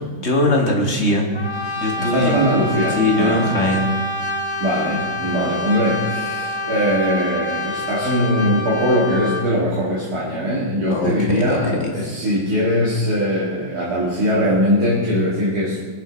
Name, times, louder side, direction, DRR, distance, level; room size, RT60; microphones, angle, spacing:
voice 1, 0.2-1.3 1.8-2.4 3.0-3.9 10.9-11.9, left 2 dB, 40° left, 1 dB, 2.1 m, -20 dB
Brass instrument, 1.3-9.5, left 1 dB, 20° left, 0.9 m, -27 dB
voice 2, 2.0-3.5 4.6-15.9, equal, 60° right, -6 dB, 2.8 m, -21 dB
21.0 x 7.9 x 5.2 m, 1.5 s
omnidirectional pair, 1.8 m